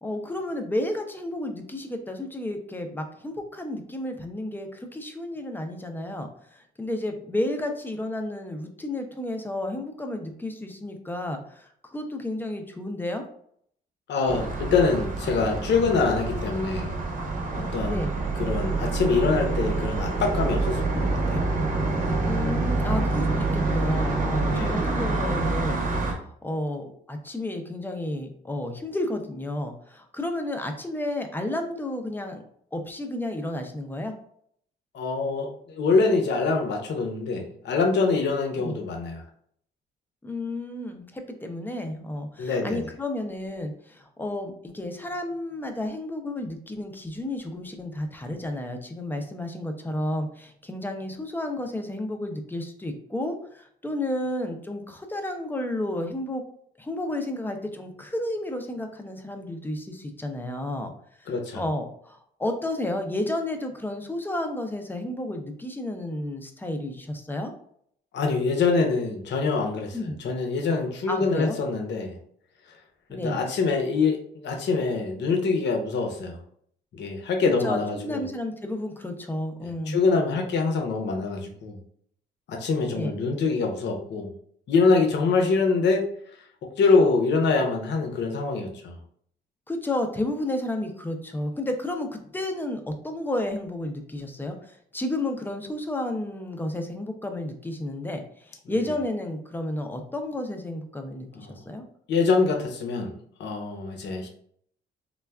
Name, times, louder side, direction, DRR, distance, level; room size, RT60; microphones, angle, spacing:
voice 1, 0.0-13.2 17.9-18.1 22.2-25.8 26.1-32.4 32.7-34.1 38.6-38.7 40.2-56.4 56.8-60.9 61.2-67.5 69.9-70.2 71.1-71.6 73.1-73.5 77.6-80.0 82.9-83.1 89.7-92.1 92.3-101.8, left 1 dB, 10° left, 5 dB, 0.5 m, -32 dB
voice 2, 14.1-16.9 17.5-18.1 18.4-21.4 24.4-24.8 34.9-39.2 42.4-42.8 61.3-61.6 68.1-72.1 73.1-76.4 76.9-78.2 79.9-81.8 82.5-84.3 84.7-86.1 86.6-89.0 101.3-101.6 102.1-103.1 103.4-104.3, left 4 dB, 60° left, 2 dB, 0.7 m, -24 dB
sound 1, 14.3-26.1, right 3 dB, 45° right, 0.8 m, -27 dB
3.3 x 2.2 x 2.3 m, 0.64 s
cardioid pair, 90°, 20 cm